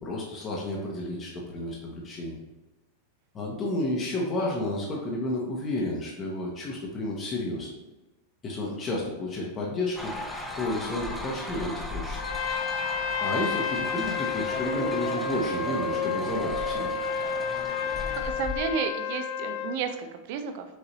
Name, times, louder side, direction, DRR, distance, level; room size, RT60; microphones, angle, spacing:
voice 1, 0.0-2.4 3.3-7.7 8.4-10.1 10.6-12.2 13.2-16.9, left 1 dB, 30° left, -3 dB, 1.0 m, -31 dB
sound 1, 10.0-18.6, left 1 dB, 10° left, 0.8 m, -36 dB
Trumpet, 12.2-19.8, left 5 dB, 60° left, 0.4 m, -30 dB
voice 2, 18.1-20.6, right 7 dB, 60° right, 7 dB, 0.5 m, -32 dB
6.3 x 2.6 x 3.0 m, 1.1 s
hypercardioid pair, 105°, 0 cm